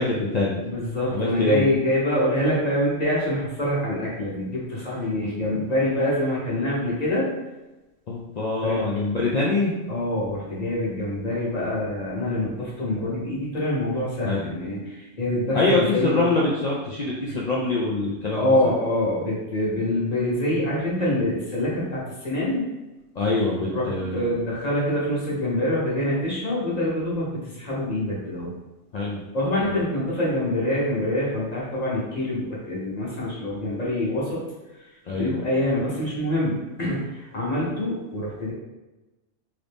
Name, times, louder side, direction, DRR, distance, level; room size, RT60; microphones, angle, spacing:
voice 1, 0.0-0.6 1.1-1.7 8.1-9.8 14.2-14.5 15.5-18.7 23.2-24.3 28.9-29.2 35.1-35.4, left 3 dB, 80° left, -4 dB, 0.3 m, -24 dB
voice 2, 0.6-7.3 8.6-8.8 9.9-16.2 17.3-17.4 18.3-22.6 23.7-28.5 29.3-34.4 35.1-38.5, left 1 dB, 35° left, -6 dB, 0.9 m, -25 dB
2.9 x 2.5 x 3.4 m, 1.1 s
omnidirectional pair, 1.3 m